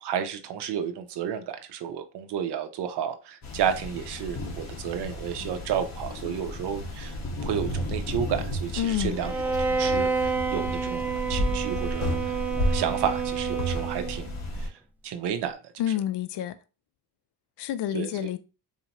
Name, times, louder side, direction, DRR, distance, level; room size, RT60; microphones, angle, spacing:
voice 1, 0.0-7.2 7.4-9.3 9.7-14.3 14.6-14.7 15.0-15.6 17.9-18.1, right 8 dB, 75° right, 0.8 m, -31 dB
sound 1, 3.4-14.7, left 1 dB, 40° left, 1.3 m, -32 dB
voice 2, 8.8-9.2 15.8-16.6 17.6-18.4, left 11 dB, 85° left, 0.5 m, -28 dB
Bowed string instrument, 9.2-14.3, right 5 dB, 5° right, 0.4 m, -29 dB
4.4 x 2.8 x 2.9 m
cardioid pair, 125°, 40 cm